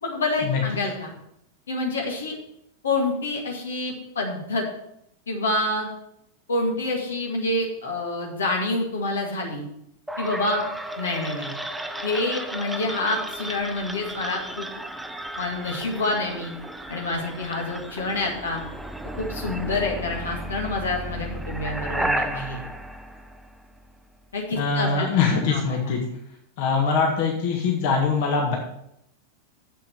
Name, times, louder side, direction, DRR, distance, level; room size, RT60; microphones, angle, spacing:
voice 1, 0.0-1.1 1.7-2.4 2.8-4.7 5.3-5.9 6.5-9.7 10.2-10.6 11.0-11.5 12.0-14.7 15.4-16.5 16.9-18.6 19.2-22.6 24.3-25.6, left 2 dB, 70° left, 1 dB, 2.0 m, -27 dB
sound 1, 10.1-24.0, right 1 dB, 5° right, 0.7 m, -33 dB
voice 2, 24.5-26.0 26.6-28.6, left 5 dB, 50° left, 0 dB, 1.7 m, -23 dB
7.5 x 7.5 x 5.8 m, 0.77 s
figure-of-eight pair, 90°, 0 cm